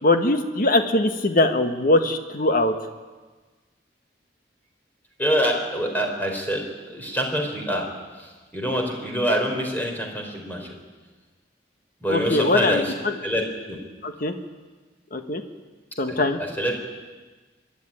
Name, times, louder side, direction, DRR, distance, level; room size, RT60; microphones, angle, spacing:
voice 1, 0.0-2.7 12.1-13.1 14.0-14.3 15.1-15.4 16.0-16.4, left 2 dB, 50° left, 7 dB, 1.4 m, -21 dB
voice 2, 5.2-7.9 8.5-10.7 12.0-12.9 13.2-13.8 16.1-16.8, equal, 10° left, 1 dB, 3.8 m, -25 dB
24.0 x 11.5 x 9.9 m, 1.3 s
head